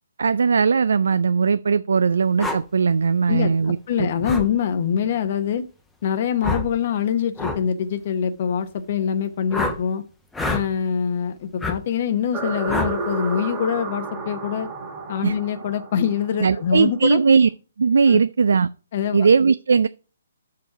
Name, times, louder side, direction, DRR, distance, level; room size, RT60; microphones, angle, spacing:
voice 1, 0.2-4.1 15.2-15.3 16.4-17.5 17.8-18.7 19.1-19.9, right 5 dB, 70° right, 0.3 m, -18 dB
sound 1, 2.4-2.6 4.2-4.5 6.4-6.7 7.4-7.6 9.5-9.8 10.3-10.7 11.6-11.8 12.7-13.0, left 2 dB, 5° left, 0.8 m, -26 dB
voice 2, 3.3-5.6 6.0-10.0 10.5-14.7 15.1-17.2 18.1-18.2 18.9-19.3, left 8 dB, 45° left, 0.7 m, -24 dB
sound 2, 12.3-17.0, right 4 dB, 15° right, 2.0 m, -32 dB
6.1 x 4.7 x 5.9 m
hypercardioid pair, 140°, 0 cm